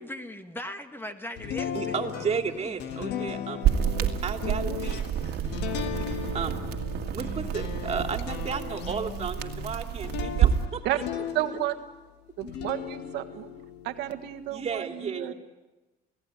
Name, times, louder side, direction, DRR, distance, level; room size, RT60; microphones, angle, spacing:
voice 1, 0.0-3.4 4.0-4.1, left 1 dB, 10° left, 8 dB, 1.8 m, -40 dB
sound 1, 1.4-12.0 12.4-14.7, left 9 dB, 85° left, 1.7 m, -37 dB
voice 2, 1.7-3.6 4.2-5.0 6.3-6.6 7.1-10.8 14.5-15.3, right 6 dB, 40° right, 5 dB, 2.8 m, -33 dB
sound 2, 3.6-10.7, right 10 dB, 75° right, 2.0 m, -29 dB
voice 3, 5.2-5.5 10.8-11.0 11.3-11.7 12.4-13.5 13.8-15.3, right 14 dB, 90° right, 7 dB, 1.6 m, -32 dB
29.0 x 17.0 x 9.8 m, 1.1 s
cardioid pair, 110°, 17 cm